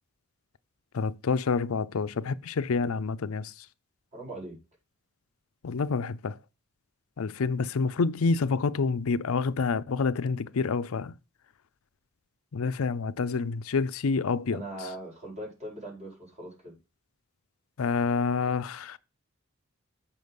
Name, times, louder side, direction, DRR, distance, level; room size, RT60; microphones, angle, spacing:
voice 1, 0.9-3.7 5.6-6.4 7.2-11.1 12.5-14.6 17.8-19.0, left 4 dB, 70° left, 0.5 m, -28 dB
voice 2, 4.1-4.6 14.5-16.8, right 1 dB, 30° right, 4.3 m, -40 dB
8.0 x 6.0 x 5.2 m
head